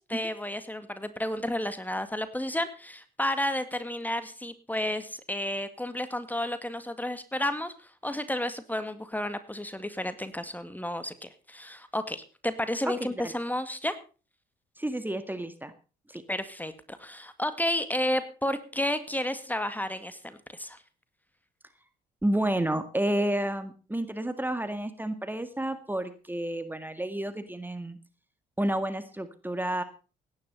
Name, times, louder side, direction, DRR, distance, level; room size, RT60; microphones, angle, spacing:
voice 1, 0.0-14.0 16.3-20.8, left 1 dB, 10° left, 11 dB, 2.0 m, -32 dB
voice 2, 14.8-15.7 16.1-16.2 22.2-28.0 28.6-29.8, right 1 dB, 10° right, 10 dB, 1.8 m, -30 dB
17.0 x 10.5 x 5.5 m, 0.36 s
hypercardioid pair, 50°, 20 cm